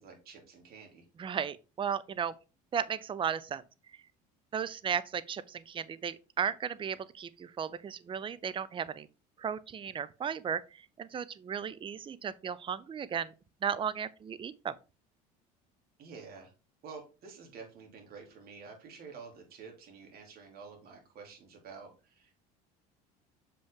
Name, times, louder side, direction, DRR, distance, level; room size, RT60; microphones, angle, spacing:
voice 1, 0.0-1.0 16.0-16.5 16.8-22.4, right 5 dB, 55° right, 3.0 m, -49 dB
voice 2, 1.2-2.3 2.7-3.6 4.5-9.1 9.4-13.3 13.6-14.7, right 7 dB, 25° right, 0.6 m, -35 dB
7.1 x 5.3 x 3.7 m
supercardioid pair, 90°, 19 cm